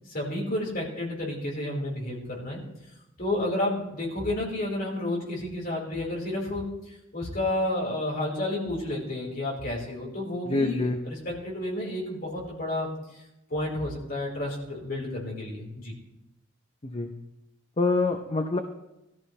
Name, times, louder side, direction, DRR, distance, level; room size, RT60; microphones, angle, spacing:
voice 1, 0.1-2.6 3.2-12.9 13.5-15.9, left 1 dB, 50° left, -3 dB, 4.4 m, -31 dB
voice 2, 10.5-11.0 16.8-17.1 17.8-18.6, left 3 dB, 30° left, 4 dB, 0.8 m, -25 dB
18.0 x 14.0 x 3.3 m, 0.92 s
head